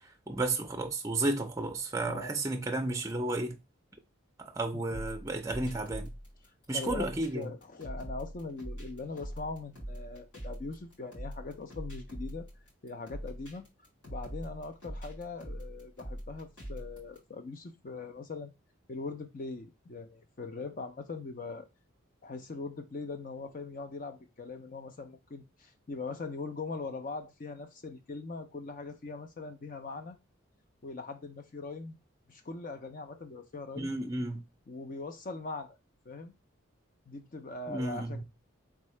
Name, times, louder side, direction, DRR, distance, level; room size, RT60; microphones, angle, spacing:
voice 1, 0.3-3.5 4.6-6.1 6.7-7.5 33.8-34.4 37.7-38.1, right 2 dB, 15° right, 0.4 m, -32 dB
voice 2, 2.1-2.4 4.7-5.1 6.7-12.5 12.8-13.6 14.1-18.5 18.9-21.7 22.2-30.2 30.8-32.0 32.3-33.9 34.7-35.8 36.1-36.3 37.1-38.2, left 3 dB, 40° left, 0.5 m, -41 dB
sound 1, 4.9-17.2, equal, 65° left, 2.7 m, -42 dB
3.6 x 3.6 x 3.1 m
head